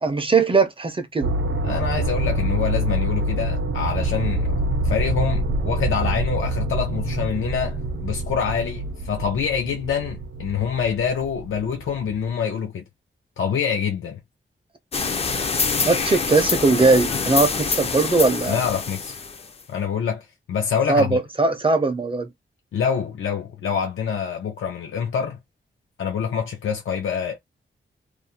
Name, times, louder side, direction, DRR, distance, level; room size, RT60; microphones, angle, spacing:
voice 1, 0.0-1.3 15.8-18.6 20.9-22.3, right 3 dB, 25° right, 0.4 m, -20 dB
sound 1, 1.2-12.3, right 2 dB, 75° right, 0.6 m, -26 dB
voice 2, 1.6-4.6 4.8-12.8 13.4-14.2 18.5-19.1 19.7-21.2 22.7-25.4 26.0-27.4, left 7 dB, 85° left, 0.5 m, -26 dB
sound 2, 14.9-19.6, left 5 dB, 30° left, 0.4 m, -25 dB
2.4 x 2.0 x 2.7 m
wide cardioid pair, 155°, 20 cm